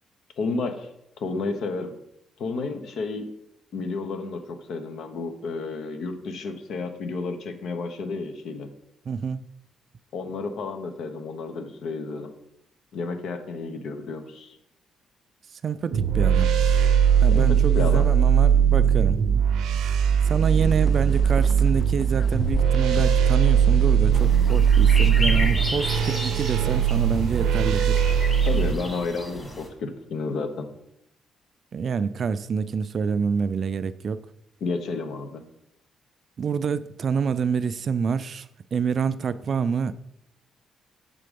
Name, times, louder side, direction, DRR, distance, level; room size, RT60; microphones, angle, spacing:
voice 1, 0.4-0.9 1.2-1.9 2.4-3.3 3.7-8.7 10.1-12.3 12.9-14.6 17.3-18.1 28.4-30.7 34.6-35.5, left 4 dB, 70° left, 0.9 m, -31 dB
voice 2, 9.1-9.4 15.6-16.5 17.2-19.2 20.3-28.0 31.7-34.2 36.4-39.9, right 6 dB, 50° right, 0.3 m, -27 dB
sound 1, 15.9-28.7, right 8 dB, 85° right, 0.6 m, -20 dB
sound 2, 20.5-26.9, left 3 dB, 40° left, 0.3 m, -35 dB
sound 3, 24.1-29.7, left 1 dB, 15° left, 1.6 m, -33 dB
7.6 x 3.7 x 5.2 m
cardioid pair, 90°, 0 cm